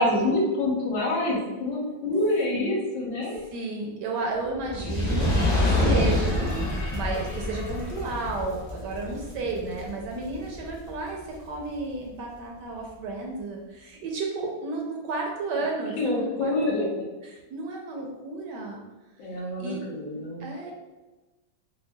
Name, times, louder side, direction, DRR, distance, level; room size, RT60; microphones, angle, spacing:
voice 1, 0.0-3.4 16.0-16.9 19.2-20.4, left 1 dB, 80° left, -4 dB, 1.7 m, -26 dB
voice 2, 3.2-16.8 17.2-18.8 19.2-19.3 19.6-19.8 20.4-20.7, right 3 dB, 70° right, 0 dB, 1.1 m, -33 dB
Fire, 4.6-11.1 11.8-11.9, left 1 dB, 65° left, 0.4 m, -27 dB
5.7 x 2.2 x 2.2 m, 1.1 s
omnidirectional pair, 2.1 m